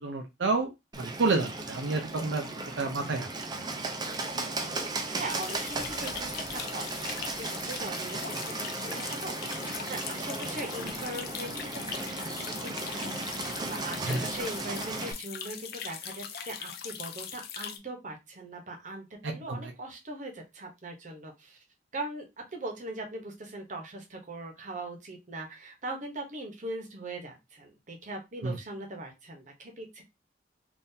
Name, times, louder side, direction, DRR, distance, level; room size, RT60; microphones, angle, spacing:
voice 1, 0.0-0.7 1.0-2.4 2.8-3.3 14.0-14.2 19.2-19.6 28.4-28.5, right 3 dB, 75° right, 4 dB, 0.6 m, -29 dB
Bird, 0.9-15.1, right 2 dB, 20° right, 0.5 m, -36 dB
voice 2, 5.1-21.6 21.9-30.0, right 2 dB, 40° right, 2 dB, 0.9 m, -40 dB
sound 1, 5.3-17.8, left 8 dB, 55° left, 0.5 m, -41 dB
3.7 x 2.6 x 2.7 m, 0.22 s
head